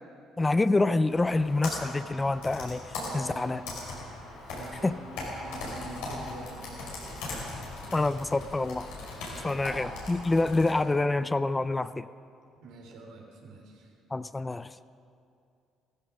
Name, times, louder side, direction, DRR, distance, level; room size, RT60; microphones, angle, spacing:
voice 1, 0.4-2.8 3.1-3.6 4.8-5.0 7.9-8.9 9.4-12.1 14.1-14.7, left 2 dB, 20° left, 14 dB, 0.4 m, -26 dB
Computer keyboard, 1.0-10.7, left 2 dB, 85° left, 4.6 m, -39 dB
voice 2, 2.9-3.6 4.5-7.3 9.3-10.0 12.6-13.9, right 2 dB, 80° right, 0 dB, 3.3 m, -46 dB
15.5 x 14.5 x 6.2 m, 2.5 s
supercardioid pair, 80°, 0 cm